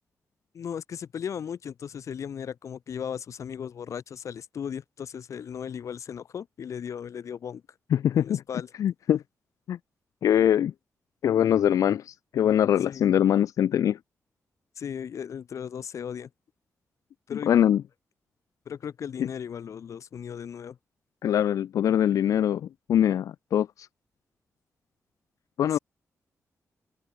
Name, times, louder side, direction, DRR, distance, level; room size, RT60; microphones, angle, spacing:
voice 1, 0.5-7.6 8.1-8.7 12.8-13.1 14.8-16.3 17.3-17.5 18.7-20.8 25.7-25.8, left 8 dB, 65° left, 2.5 m, -36 dB
voice 2, 7.9-8.4 8.8-9.2 9.7-9.8 10.2-10.7 11.2-14.0 17.5-17.8 21.2-23.9 25.6-25.8, left 10 dB, 85° left, 0.4 m, -23 dB
wide cardioid pair, 145°, 6 cm